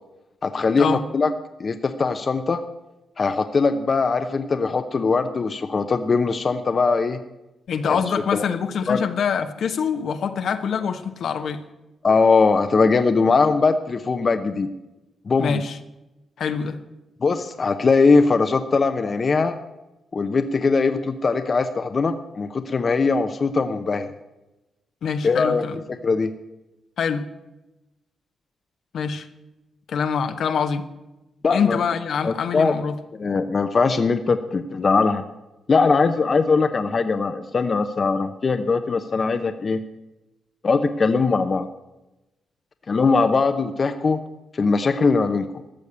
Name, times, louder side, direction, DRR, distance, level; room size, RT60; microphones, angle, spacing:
voice 1, 0.4-1.3 1.6-2.6 3.2-7.2 7.9-8.0 8.3-8.5 8.9-9.0 12.0-14.7 15.3-15.6 17.2-19.6 20.1-24.1 25.2-25.6 26.0-26.3 31.4-31.8 32.2-32.7 33.2-35.2 35.7-39.8 40.6-41.7 42.9-44.2 44.5-45.5, left 4 dB, 45° left, 8 dB, 0.8 m, -20 dB
voice 2, 7.7-11.6 15.4-15.8 16.4-16.8 25.0-25.8 27.0-27.3 28.9-29.3 29.9-30.9 31.5-33.0, left 6 dB, 70° left, 7 dB, 1.0 m, -25 dB
14.0 x 6.6 x 8.7 m, 1.0 s
cardioid pair, 75°, 0 cm